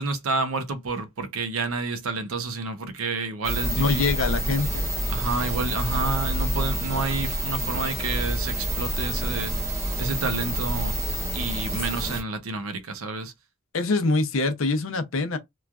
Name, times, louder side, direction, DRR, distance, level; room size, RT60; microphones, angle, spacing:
voice 1, 0.0-4.0 5.1-9.5 10.0-10.9 11.3-13.3, right 3 dB, 85° right, 0.6 m, -29 dB
sound 1, 3.4-12.2, equal, 15° right, 0.7 m, -28 dB
voice 2, 3.7-4.9 13.7-15.4, left 3 dB, 75° left, 0.6 m, -24 dB
3.0 x 2.3 x 2.3 m
head